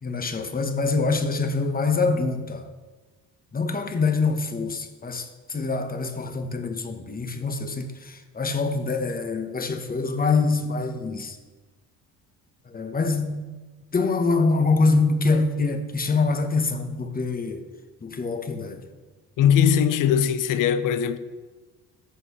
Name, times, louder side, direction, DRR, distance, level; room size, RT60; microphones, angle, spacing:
voice 1, 0.0-2.7 3.5-11.4 12.6-13.5 13.9-17.7 18.0-18.9, left 3 dB, 25° left, 1.2 m, -25 dB
voice 2, 19.4-21.2, left 8 dB, 55° left, 0.7 m, -20 dB
13.5 x 6.0 x 3.2 m
hypercardioid pair, 70°, 38 cm